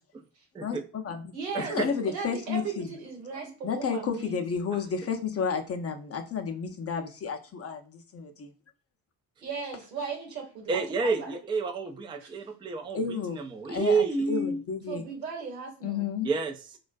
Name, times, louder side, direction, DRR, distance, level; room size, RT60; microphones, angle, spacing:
voice 1, 0.6-1.3 1.7-2.9 3.6-8.5 12.9-13.4 13.7-15.0 15.8-16.3, left 6 dB, 30° left, 4 dB, 0.6 m, -31 dB
voice 2, 1.3-1.7 2.1-4.4 9.4-11.3 12.2-12.3 14.9-16.1, right 5 dB, 90° right, 0 dB, 0.9 m, -37 dB
voice 3, 10.7-14.6 16.2-16.8, right 4 dB, 10° right, 6 dB, 0.4 m, -29 dB
2.3 x 2.1 x 2.5 m, 0.38 s
hypercardioid pair, 50°, 48 cm